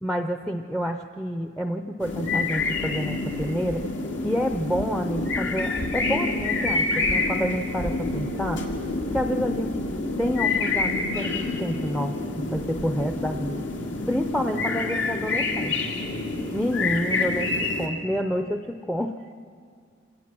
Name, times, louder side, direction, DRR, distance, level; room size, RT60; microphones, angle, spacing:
voice 1, 0.0-3.8 4.2-8.6 9.1-9.8 10.2-13.6 14.1-15.8 16.5-19.3, equal, 5° left, 6 dB, 0.5 m, -28 dB
sound 1, 2.0-17.9, left 3 dB, 80° left, 2.2 m, -27 dB
26.5 x 18.0 x 6.1 m, 2.2 s
head